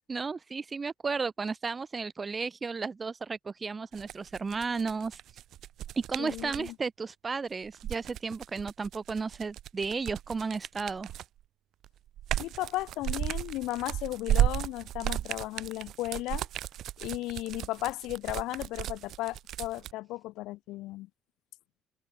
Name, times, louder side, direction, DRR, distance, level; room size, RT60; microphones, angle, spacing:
voice 1, 0.1-5.2 5.9-11.1, right 4 dB, 20° right, 1.6 m, -33 dB
sound 1, 3.9-6.7 7.6-11.4 11.8-19.9, right 12 dB, 50° right, 3.2 m, -34 dB
voice 2, 6.2-6.7 12.4-16.5 17.0-21.1, left 18 dB, 65° left, 3.3 m, -35 dB
cardioid pair, 160°, 0 cm